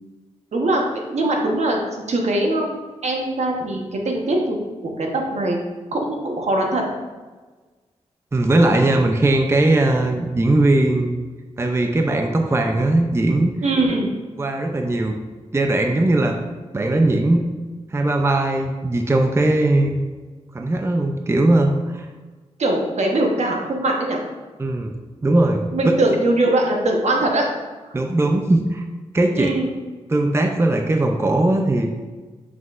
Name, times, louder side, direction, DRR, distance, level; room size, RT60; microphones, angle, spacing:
voice 1, 0.5-2.8 3.0-5.6 5.9-6.9 13.6-14.1 22.6-24.2 25.7-27.4 29.3-29.7, right 1 dB, 70° right, 0 dB, 1.2 m, -21 dB
voice 2, 8.3-11.1 11.6-13.5 14.4-15.2 15.5-16.4 16.7-17.5 17.9-20.0 20.5-22.1 24.6-24.9 25.2-25.7 27.9-28.8 29.1-29.5 30.1-31.9, right 2 dB, 20° right, 4 dB, 0.5 m, -19 dB
7.4 x 5.9 x 2.5 m, 1.3 s
cardioid pair, 75°, 12 cm